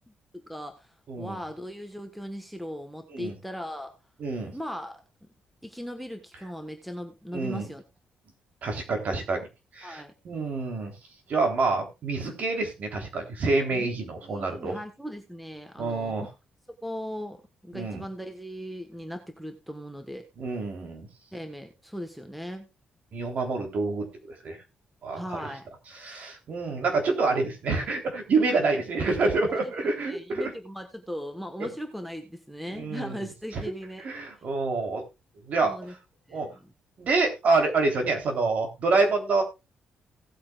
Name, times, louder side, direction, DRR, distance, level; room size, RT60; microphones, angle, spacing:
voice 1, 0.3-3.9 4.5-5.3 5.6-7.8 9.8-10.1 13.7-13.9 14.2-16.3 16.8-20.2 21.3-22.7 25.1-25.6 29.5-29.7 30.1-34.0 35.6-35.9 36.3-36.7, equal, ahead, 6 dB, 1.3 m, -38 dB
voice 2, 1.1-1.4 3.1-3.3 4.2-4.5 7.3-7.7 8.6-9.5 9.7-10.9 11.3-14.8 15.8-16.2 17.7-18.0 20.4-21.1 23.1-24.1 24.4-24.6 25.0-25.5 25.9-30.5 31.6-31.7 32.7-33.3 33.5-33.6 34.0-35.0 35.4-35.8 36.3-36.5 37.0-39.4, right 3 dB, 50° right, 4 dB, 3.4 m, -27 dB
17.5 x 8.5 x 2.4 m, 0.25 s
cardioid pair, 155°, 3 cm